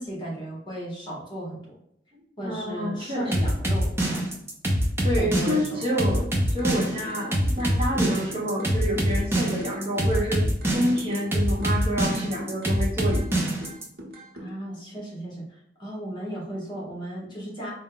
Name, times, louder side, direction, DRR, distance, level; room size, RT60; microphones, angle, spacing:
voice 1, 0.0-1.6 2.4-4.2 5.2-5.8 14.4-17.7, right 1 dB, 25° left, -4 dB, 1.3 m, -35 dB
voice 2, 2.4-3.5 5.0-10.4 10.7-13.4, equal, 30° right, -4 dB, 1.1 m, -28 dB
sound 1, 3.3-13.9, right 1 dB, 15° right, 0.7 m, -24 dB
sound 2, 6.6-7.3 7.6-9.3 9.6-11.3 11.6-13.3 13.6-14.5, equal, 60° right, 0.9 m, -41 dB
4.1 x 2.3 x 3.7 m, 0.74 s
head